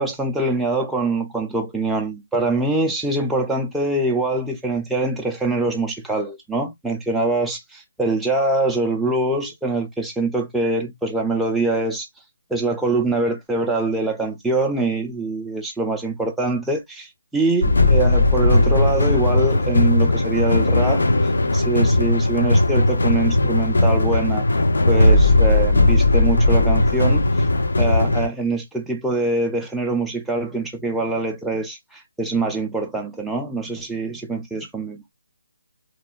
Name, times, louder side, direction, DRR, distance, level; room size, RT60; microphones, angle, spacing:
voice 1, 0.0-12.1 12.5-21.1 21.5-24.5 24.9-27.2 27.8-35.0, right 2 dB, ahead, 0.3 m, -24 dB
sound 1, 17.6-28.3, left 2 dB, 80° left, 0.6 m, -17 dB
3.0 x 2.1 x 2.2 m
hypercardioid pair, 175°, 0 cm